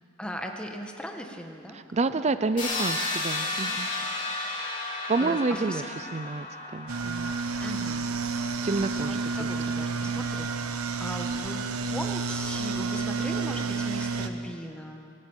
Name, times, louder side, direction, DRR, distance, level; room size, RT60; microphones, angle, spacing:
voice 1, 0.2-1.8 2.1-2.4 3.3-3.8 4.2-4.8 5.2-5.8 7.6-8.1 8.3-11.6 11.8-15.0, equal, 5° left, 3 dB, 1.6 m, -39 dB
voice 2, 1.7-3.9 5.1-5.8 6.1-6.5 6.7-7.3 8.6-9.5, right 3 dB, 30° right, 12 dB, 0.5 m, -28 dB
sound 1, 2.6-8.4, left 2 dB, 25° left, 5.2 m, -33 dB
sound 2, 6.9-14.3, right 4 dB, 80° right, 1.2 m, -30 dB
24.5 x 13.0 x 8.9 m, 2.4 s
head